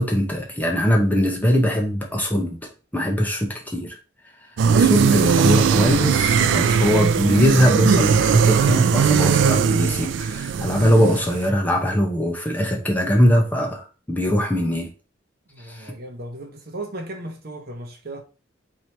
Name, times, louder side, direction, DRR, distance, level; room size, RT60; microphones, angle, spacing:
voice 1, 0.0-4.0 4.7-14.9 15.7-15.9, equal, 10° left, 0.7 m, -21 dB
sound 1, 4.6-11.5, right 6 dB, 65° right, 0.3 m, -19 dB
voice 2, 15.5-18.2, right 1 dB, 50° right, 0.8 m, -36 dB
3.1 x 2.7 x 4.4 m
head